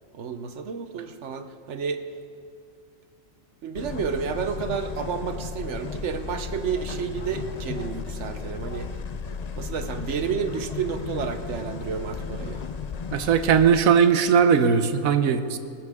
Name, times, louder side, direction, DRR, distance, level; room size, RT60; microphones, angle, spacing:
voice 1, 0.1-2.0 3.6-8.9 9.6-12.6, right 6 dB, 60° right, 9 dB, 1.1 m, -31 dB
sound 1, 3.7-13.8, left 5 dB, 45° left, 0.5 m, -34 dB
voice 2, 13.1-15.6, right 7 dB, 85° right, 10 dB, 1.3 m, -19 dB
19.0 x 14.5 x 3.6 m, 2.4 s
omnidirectional pair, 1.4 m